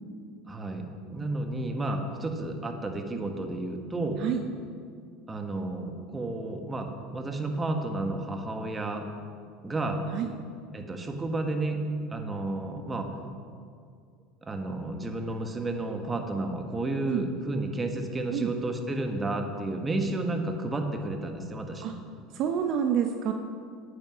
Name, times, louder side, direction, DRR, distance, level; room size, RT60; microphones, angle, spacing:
voice 1, 0.5-4.2 5.3-9.1 9.6-10.0 10.7-13.1 14.4-22.0, right 2 dB, 20° right, 4 dB, 1.4 m, -32 dB
voice 2, 22.3-23.3, right 8 dB, 55° right, 6 dB, 0.7 m, -27 dB
9.2 x 8.9 x 6.2 m, 2.2 s
hypercardioid pair, 95°, 0 cm